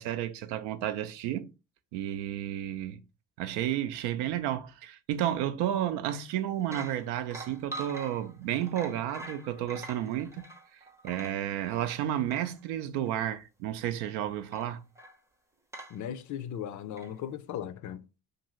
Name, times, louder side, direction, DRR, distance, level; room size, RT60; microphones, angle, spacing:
voice 1, 0.0-1.5 1.9-3.0 3.4-10.4 10.7-14.8, right 11 dB, 90° right, 0.5 m, -32 dB
sound 1, 6.1-6.3 6.6-12.6 13.0-13.2 14.5-15.2 15.7-16.0 17.0-17.1, right 2 dB, 10° right, 0.5 m, -45 dB
voice 2, 15.9-18.0, left 9 dB, 50° left, 0.5 m, -37 dB
2.7 x 2.6 x 2.9 m
cardioid pair, 90°, 39 cm